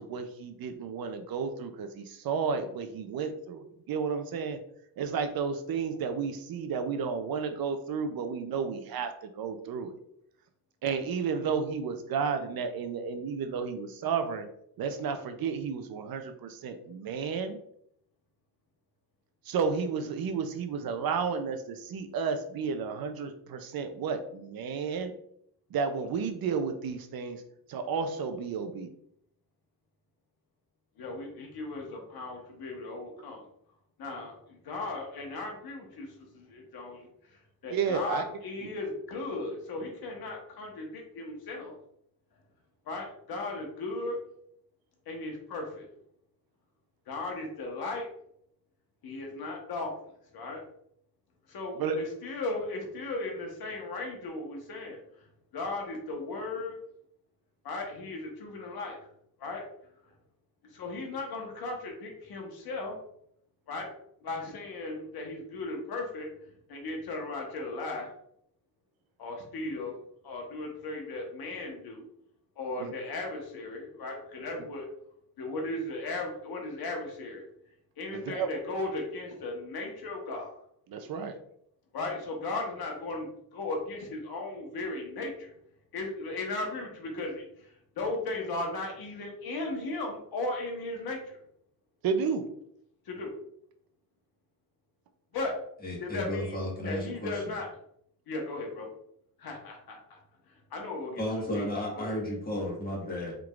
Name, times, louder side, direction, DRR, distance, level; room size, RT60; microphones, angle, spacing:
voice 1, 0.0-4.6 5.0-10.0 10.8-14.5 14.8-17.6 19.5-25.1 25.7-27.4 27.7-28.9 37.7-38.2 38.6-38.7 51.8-52.0 72.8-72.9 78.1-78.5 80.9-81.4 92.0-92.4, right 5 dB, 70° right, 8 dB, 0.6 m, -32 dB
voice 2, 31.0-33.4 34.0-37.1 37.6-41.7 42.9-44.2 45.1-45.9 47.1-48.1 49.0-49.9 50.3-50.6 51.5-55.0 55.5-56.8 57.6-59.0 59.4-59.6 60.7-63.0 63.7-63.9 64.2-66.3 66.7-68.1 69.2-69.9 70.2-72.0 72.6-74.9 75.4-77.4 78.0-80.5 81.9-85.5 85.9-91.4 93.1-93.3 95.3-95.5 96.0-97.7 98.3-98.9 99.4-100.2 100.7-101.6 101.9-102.2, left 2 dB, 80° left, 1 dB, 1.2 m, -36 dB
voice 3, 95.8-97.5 101.2-103.3, left 1 dB, 25° left, -4 dB, 1.6 m, -33 dB
4.7 x 3.7 x 2.4 m, 0.71 s
wide cardioid pair, 140°, 37 cm